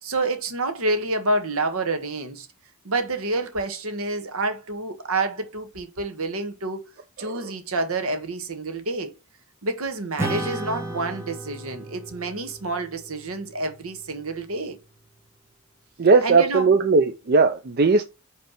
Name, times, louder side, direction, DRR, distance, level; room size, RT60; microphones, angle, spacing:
voice 1, 0.0-2.5 2.8-6.9 7.2-9.1 9.6-14.8 16.2-16.8, right 2 dB, 75° right, 1.3 m, -28 dB
voice 2, 7.2-7.5 16.0-18.0, right 4 dB, 45° right, 0.5 m, -18 dB
Acoustic guitar / Strum, 10.2-15.0, right 1 dB, 10° right, 1.1 m, -35 dB
5.4 x 3.3 x 5.7 m
head